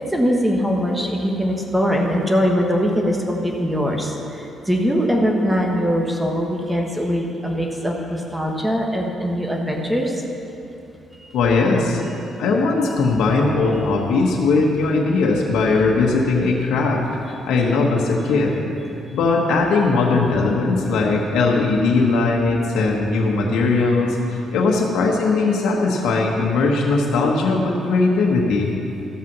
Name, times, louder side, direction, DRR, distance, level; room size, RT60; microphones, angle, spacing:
voice 1, 0.0-10.2 11.1-11.4 12.1-12.4 19.1-19.2, equal, 10° right, 0 dB, 1.4 m, -22 dB
voice 2, 11.3-12.0 12.4-18.7 19.1-28.7, left 3 dB, 80° left, -2 dB, 1.2 m, -19 dB
13.5 x 5.8 x 6.1 m, 2.7 s
cardioid pair, 90°, 0 cm